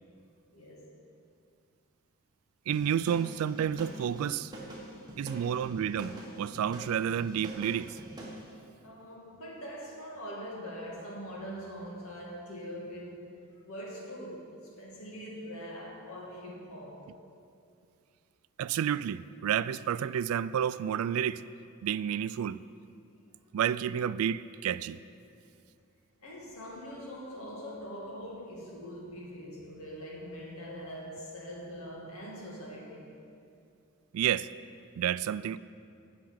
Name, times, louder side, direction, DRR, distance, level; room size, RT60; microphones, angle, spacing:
voice 1, 0.5-0.9 8.8-13.3 13.6-14.5 14.8-17.1 26.2-33.1, equal, 85° left, 2.3 m, -43 dB
sound 1, 2.7-8.4, right 1 dB, 20° right, 1.3 m, -44 dB
voice 2, 2.7-4.5 5.2-8.0 18.6-21.4 21.8-22.6 23.5-25.0 34.1-34.5 35.0-35.6, right 9 dB, 80° right, 0.3 m, -30 dB
8.5 x 6.8 x 7.9 m
head